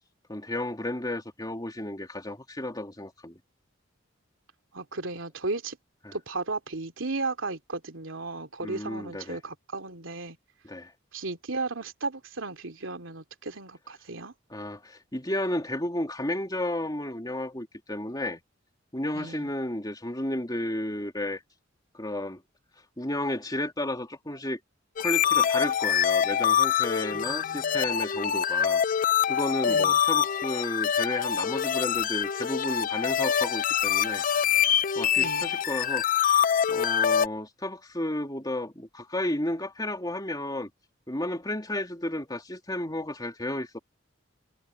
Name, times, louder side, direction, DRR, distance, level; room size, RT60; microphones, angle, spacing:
voice 1, 0.3-3.4 6.0-6.1 8.6-9.4 10.6-10.9 14.5-18.4 18.9-21.4 21.9-22.4 23.0-24.6 25.0-28.8 29.3-34.2 34.6-34.7 34.9-40.7 41.1-43.8, left 1 dB, 20° left, 3.0 m, -32 dB
voice 2, 4.7-5.8 6.1-10.4 11.1-14.3 19.1-19.5 27.1-27.9 29.7-30.0 35.2-35.5, right 3 dB, 85° right, 2.8 m, -35 dB
sound 1, 25.0-37.3, left 8 dB, 45° left, 0.4 m, -25 dB
head